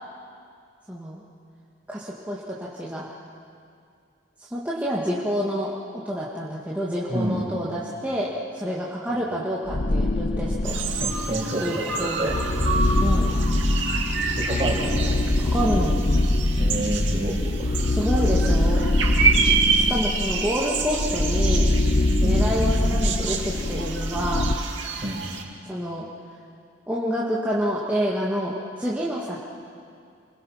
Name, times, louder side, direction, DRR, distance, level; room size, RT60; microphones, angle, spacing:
voice 1, 0.9-1.2 1.9-3.1 4.5-10.7 11.6-12.3 13.0-13.3 15.4-16.0 17.9-18.8 19.7-21.7 22.2-24.5 25.7-26.1 26.9-29.4, equal, 10° right, -6 dB, 2.0 m, -28 dB
voice 2, 7.1-7.4 11.0-11.6 12.0-12.3 14.3-15.1 16.6-17.3 17.6-17.8 22.2-22.5 25.0-25.2, right 1 dB, 30° right, -3 dB, 5.5 m, -28 dB
sound 1, 9.7-11.4 12.0-24.6, left 1 dB, 40° left, 0.8 m, -23 dB
sound 2, 10.6-25.4, right 5 dB, 70° right, 2.5 m, -28 dB
28.0 x 22.0 x 5.8 m, 2.4 s
head